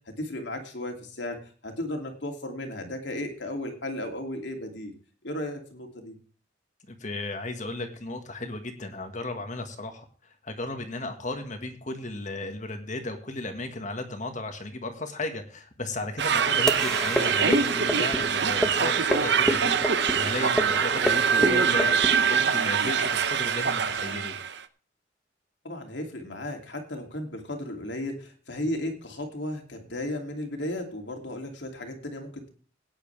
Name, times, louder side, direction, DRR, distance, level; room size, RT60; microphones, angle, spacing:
voice 1, 0.2-4.9 5.2-6.1 25.6-32.5, left 1 dB, 70° left, 3 dB, 2.7 m, -35 dB
voice 2, 6.9-10.1 10.4-22.0 22.2-24.3, left 2 dB, 40° left, 5 dB, 1.7 m, -34 dB
sound 1, 16.2-24.6, right 7 dB, 60° right, 0.8 m, -24 dB
sound 2, 16.4-22.5, equal, 5° left, 1.2 m, -30 dB
17.0 x 9.8 x 3.4 m, 0.42 s
head